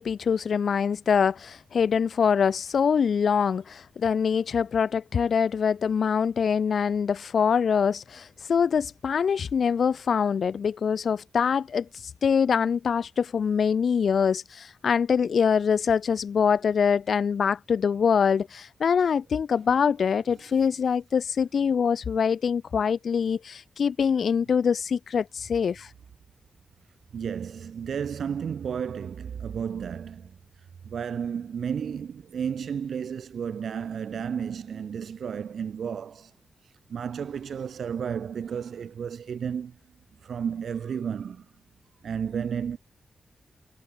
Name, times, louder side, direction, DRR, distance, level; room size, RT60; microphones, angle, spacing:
voice 1, 0.0-11.9 12.2-25.9, left 6 dB, 70° left, 0.6 m, -24 dB
voice 2, 27.1-30.3 30.9-36.3 36.9-39.7 40.2-41.4 42.0-42.8, right 7 dB, 80° right, 1.3 m, -32 dB
cardioid pair, 85°, 0 cm